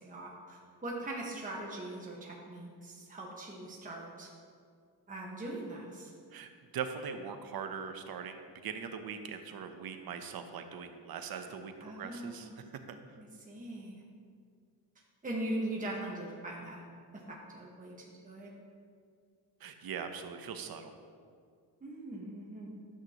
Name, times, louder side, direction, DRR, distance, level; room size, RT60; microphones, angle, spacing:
voice 1, 0.0-4.3 5.1-6.1 11.3-11.4 11.8-12.6 13.2-14.0 15.2-16.8 17.3-17.9 18.2-18.5 21.8-22.7, right 1 dB, 20° right, -3 dB, 1.4 m, -41 dB
voice 2, 6.3-12.6 19.6-20.9, right 6 dB, 60° right, 7 dB, 0.9 m, -41 dB
12.0 x 7.8 x 3.0 m, 2.2 s
cardioid pair, 100°, 40 cm